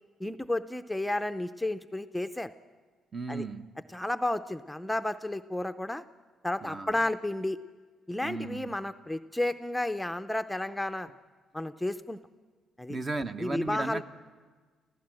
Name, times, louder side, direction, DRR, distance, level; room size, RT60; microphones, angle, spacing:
voice 1, 0.2-2.5 3.3-3.5 3.9-6.0 6.4-7.6 8.1-11.1 11.5-12.2 12.8-13.0 13.4-14.0, left 1 dB, 5° left, 9 dB, 0.5 m, -32 dB
voice 2, 3.1-3.7 6.6-6.9 8.2-8.7 12.9-14.0, right 3 dB, 35° right, 9 dB, 0.9 m, -35 dB
26.0 x 15.5 x 7.7 m, 1.5 s
cardioid pair, 90°, 0 cm